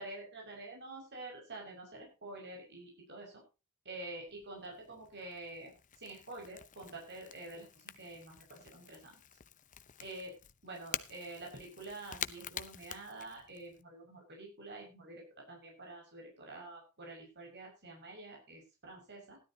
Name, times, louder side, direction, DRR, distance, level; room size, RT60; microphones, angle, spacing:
voice 1, 0.0-3.4 3.8-9.2 10.0-10.3 10.6-19.4, right 2 dB, 50° right, 0 dB, 6.0 m, -48 dB
Crackle / Crack, 4.3-13.8, left 9 dB, 35° left, 0.8 m, -48 dB
16.5 x 12.5 x 2.8 m, 0.30 s
head